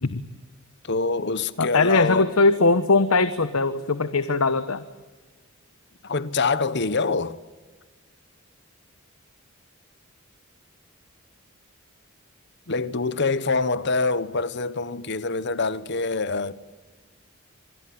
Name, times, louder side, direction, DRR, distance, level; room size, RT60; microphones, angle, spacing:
voice 1, 0.8-2.3 6.0-7.4 12.7-16.5, left 4 dB, 55° left, 1.1 m, -25 dB
voice 2, 1.6-4.8, left 3 dB, 90° left, 1.1 m, -20 dB
26.5 x 21.5 x 9.5 m
head